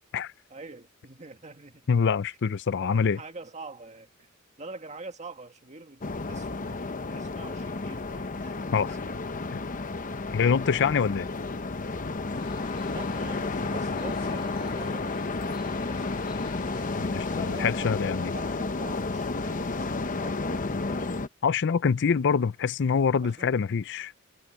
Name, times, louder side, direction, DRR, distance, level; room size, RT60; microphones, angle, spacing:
voice 1, 0.5-2.0 2.4-2.5 2.8-4.3 4.6-6.8 7.1-9.2 12.8-16.1 17.4-21.2 23.2-23.5, right 3 dB, 35° right, 1.9 m, -45 dB
voice 2, 1.9-3.2 8.7-9.0 9.5-9.6 10.3-11.3 17.0-18.3 21.4-24.1, left 6 dB, 55° left, 0.5 m, -25 dB
sound 1, 6.0-21.3, left 3 dB, 40° left, 0.9 m, -32 dB
sound 2, 12.3-18.0, left 2 dB, 25° left, 2.5 m, -46 dB
head